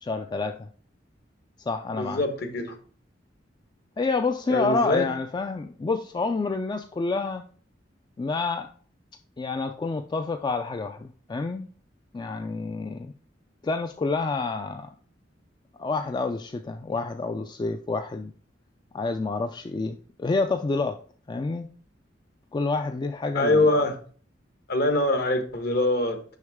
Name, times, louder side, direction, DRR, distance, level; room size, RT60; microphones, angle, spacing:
voice 1, 0.0-0.7 1.7-2.2 4.0-7.4 8.2-8.7 9.4-11.7 12.1-13.1 13.6-14.9 15.8-18.3 18.9-21.0 21.3-21.7 22.5-23.7, left 3 dB, 25° left, 0.3 m, -28 dB
voice 2, 1.9-2.8 4.5-5.0 23.3-24.0 24.7-26.2, left 2 dB, 55° left, 1.1 m, -23 dB
6.4 x 5.3 x 3.5 m
head